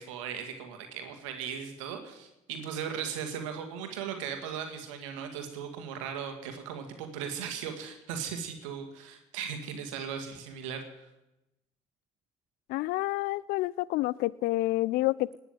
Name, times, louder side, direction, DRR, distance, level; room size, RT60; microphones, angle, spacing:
voice 1, 0.0-10.8, right 7 dB, 85° right, 6 dB, 2.0 m, -37 dB
voice 2, 12.7-15.4, left 18 dB, 70° left, 23 dB, 0.5 m, -28 dB
19.0 x 6.9 x 9.2 m, 0.94 s
hypercardioid pair, 50°, 16 cm